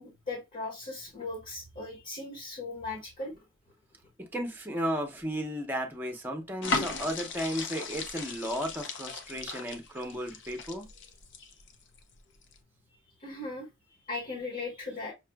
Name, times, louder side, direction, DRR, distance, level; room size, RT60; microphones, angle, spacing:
voice 1, 0.0-3.3 13.2-13.7 14.1-15.1, left 3 dB, 40° left, 1.3 m, -38 dB
voice 2, 4.2-10.9, equal, 10° right, 0.8 m, -34 dB
sound 1, 6.6-12.0 12.4-12.6, left 3 dB, 65° left, 0.6 m, -36 dB
5.8 x 2.4 x 2.2 m
head